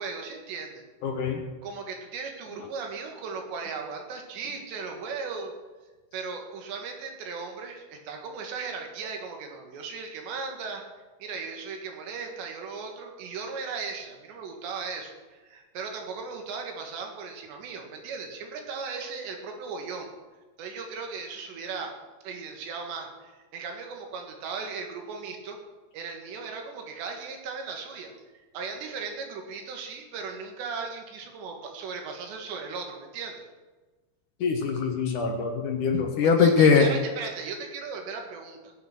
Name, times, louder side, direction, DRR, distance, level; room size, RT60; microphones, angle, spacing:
voice 1, 0.0-0.8 1.6-5.5 6.1-10.8 11.2-20.1 20.6-21.9 22.2-25.6 25.9-28.1 28.5-33.4 36.2-38.7, right 5 dB, 70° right, 3 dB, 3.9 m, -37 dB
voice 2, 1.0-1.4 34.4-36.9, left 5 dB, 70° left, 3 dB, 2.0 m, -22 dB
20.5 x 7.2 x 6.0 m, 1.3 s
omnidirectional pair, 5.3 m